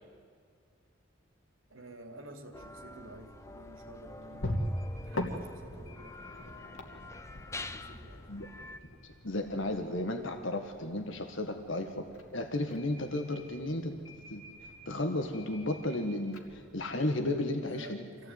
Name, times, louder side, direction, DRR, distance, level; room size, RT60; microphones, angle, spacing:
voice 1, 1.7-6.2 7.6-8.3 17.6-18.3, right 1 dB, 80° right, 5 dB, 2.8 m, -51 dB
sound 1, 2.5-8.8, left 2 dB, 15° left, 0.7 m, -47 dB
sound 2, 3.1-17.5, left 1 dB, 85° left, 2.5 m, -43 dB
voice 2, 9.0-12.1 12.3-13.9 14.3-14.4 14.8-18.0, left 1 dB, 70° left, 5 dB, 1.7 m, -33 dB
25.0 x 16.0 x 9.6 m, 2.2 s
head